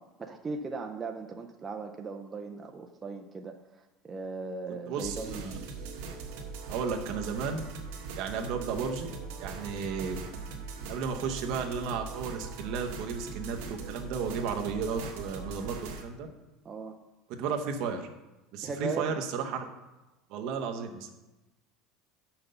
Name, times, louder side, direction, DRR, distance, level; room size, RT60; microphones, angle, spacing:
voice 1, 0.0-3.6 4.0-5.4 16.7-17.0 18.6-19.2, right 4 dB, 15° right, 3 dB, 0.3 m, -38 dB
voice 2, 4.9-5.6 6.7-7.6 8.1-10.2 10.9-16.3 17.3-18.1 18.5-19.6 20.3-21.1, right 5 dB, 45° right, 3 dB, 0.8 m, -34 dB
sound 1, 5.0-16.0, right 4 dB, 70° right, 1.2 m, -41 dB
5.8 x 5.2 x 6.7 m, 1.1 s
cardioid pair, 180°, 0 cm